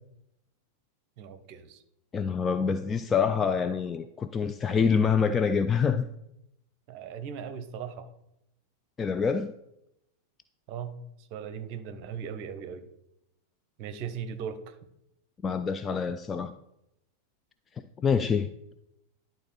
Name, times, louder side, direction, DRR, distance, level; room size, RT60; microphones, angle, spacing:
voice 1, 1.2-1.8 6.9-8.1 10.7-12.8 13.8-14.8, right 7 dB, 45° right, 0.8 m, -38 dB
voice 2, 2.1-6.1 9.0-9.5 15.4-16.5 18.0-18.5, left 6 dB, 20° left, 0.3 m, -26 dB
11.0 x 4.0 x 4.2 m
figure-of-eight pair, 90°, 0 cm